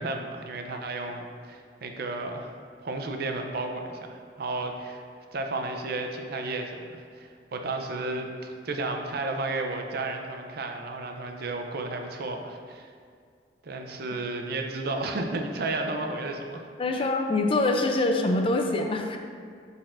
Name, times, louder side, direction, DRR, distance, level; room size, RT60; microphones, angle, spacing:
voice 1, 0.0-2.5 2.8-5.0 5.3-12.9 13.6-16.6 16.9-17.1, right 2 dB, 60° right, 4 dB, 0.6 m, -33 dB
voice 2, 16.8-19.2, left 2 dB, 30° left, 4 dB, 0.4 m, -24 dB
9.9 x 4.1 x 2.5 m, 2.1 s
head